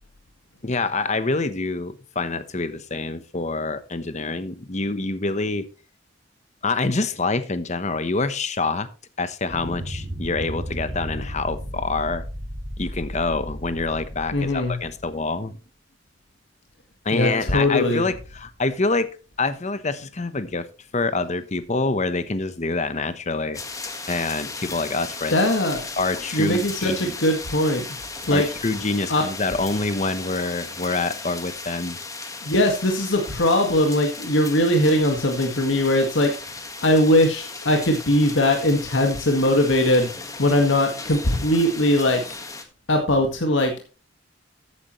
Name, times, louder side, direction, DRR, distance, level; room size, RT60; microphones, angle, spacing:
voice 1, 0.6-5.7 6.6-8.9 9.2-12.2 12.8-15.6 17.0-19.1 19.4-20.7 20.9-23.6 24.1-25.4 26.0-27.1 28.3-32.0, left 3 dB, 40° left, 1.0 m, -26 dB
sound 1, 9.5-15.2, equal, 20° right, 5.0 m, -34 dB
voice 2, 14.3-14.8 17.1-18.0 25.3-25.8 26.3-27.8 28.3-28.5 29.1-29.3 32.4-36.3 36.8-40.1 40.4-42.2 42.9-43.7, left 1 dB, 80° left, 1.9 m, -20 dB
sound 2, 23.5-42.6, left 3 dB, 20° left, 1.6 m, -36 dB
13.5 x 9.6 x 3.1 m
head